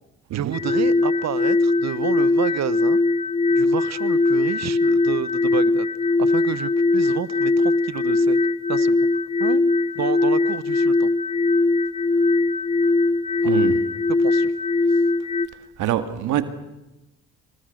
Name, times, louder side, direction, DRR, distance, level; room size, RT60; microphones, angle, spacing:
voice 1, 0.3-3.0 3.5-5.9 6.2-8.4 8.7-8.9 9.4-9.6 9.9-11.1 13.4-13.6 14.2-14.5, right 10 dB, 60° right, 1.2 m, -30 dB
sound 1, 0.5-15.5, left 3 dB, 20° left, 1.0 m, -20 dB
voice 2, 13.5-13.8 15.8-16.4, right 12 dB, 85° right, 2.0 m, -24 dB
27.5 x 24.5 x 6.6 m
cardioid pair, 90°, 30 cm